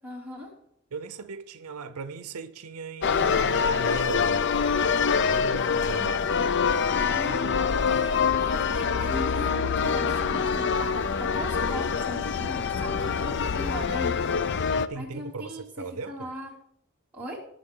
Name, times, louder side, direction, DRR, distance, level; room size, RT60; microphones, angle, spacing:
voice 1, 0.0-0.5 7.1-16.5 17.1-17.4, equal, 10° right, 2.9 m, -39 dB
voice 2, 0.9-6.4 14.8-16.3, right 4 dB, 85° right, 0.6 m, -38 dB
sound 1, 3.0-14.9, left 6 dB, 50° left, 0.4 m, -25 dB
18.5 x 6.7 x 3.8 m
head